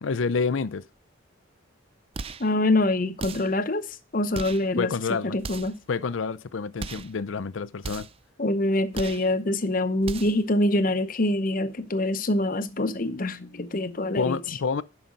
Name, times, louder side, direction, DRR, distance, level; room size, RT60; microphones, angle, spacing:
voice 1, 0.0-0.9 4.8-5.4 5.9-8.1 14.2-14.8, left 5 dB, 80° left, 0.5 m, -28 dB
sound 1, 2.1-2.5 3.2-3.6 4.3-4.7 5.4-5.8 6.8-7.2 7.8-8.2 8.9-9.3 10.0-10.5, right 4 dB, 30° right, 0.5 m, -37 dB
voice 2, 2.4-3.9 4.1-4.9 5.2-5.8 8.4-14.4, left 1 dB, 45° left, 0.8 m, -25 dB
11.0 x 5.8 x 5.2 m
head